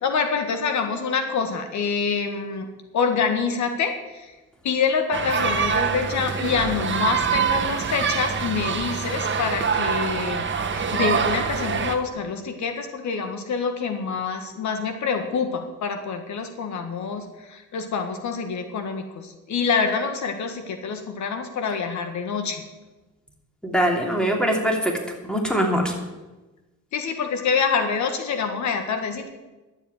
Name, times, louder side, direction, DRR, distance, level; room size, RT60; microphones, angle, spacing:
voice 1, 0.0-2.6 2.9-3.9 4.6-10.4 10.7-17.2 17.7-19.0 19.5-22.6 26.9-29.3, left 5 dB, 70° left, 7 dB, 1.6 m, -26 dB
sound 1, 5.1-12.0, right 6 dB, 40° right, 1.4 m, -25 dB
voice 2, 23.6-25.0 25.2-25.9, equal, 5° left, 1 dB, 3.1 m, -22 dB
12.0 x 7.9 x 9.2 m, 1.1 s
cardioid pair, 90°, 30 cm